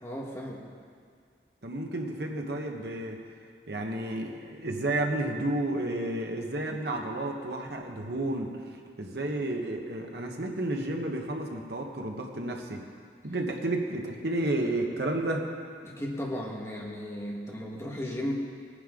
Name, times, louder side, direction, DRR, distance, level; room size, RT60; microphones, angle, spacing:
voice 1, 0.0-0.7 15.8-18.3, equal, 15° left, -3 dB, 1.6 m, -35 dB
voice 2, 1.6-3.2 3.7-12.8 13.2-15.5, right 1 dB, 60° right, 1 dB, 1.4 m, -31 dB
19.0 x 9.8 x 3.9 m, 2.2 s
head